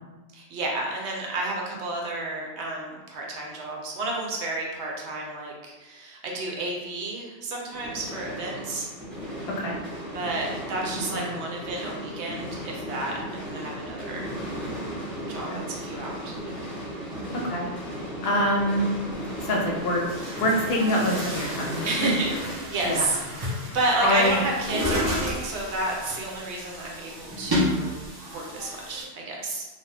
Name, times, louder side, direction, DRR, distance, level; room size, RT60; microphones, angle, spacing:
voice 1, 0.3-8.9 10.1-14.3 15.3-16.7 21.8-23.2 23.5-28.0 28.3-29.7, right 2 dB, 80° right, -1 dB, 0.9 m, -31 dB
sound 1, 7.7-22.5, equal, 5° right, 0.9 m, -36 dB
voice 2, 17.3-17.7 18.2-18.9 19.4-20.0 20.4-22.1 22.8-23.1 24.0-24.4, left 1 dB, 65° left, -1 dB, 0.7 m, -25 dB
Chatter / Gurgling / Tap, 19.9-29.0, equal, 35° right, 0.3 m, -32 dB
2.7 x 2.1 x 3.2 m, 1.2 s
omnidirectional pair, 1.1 m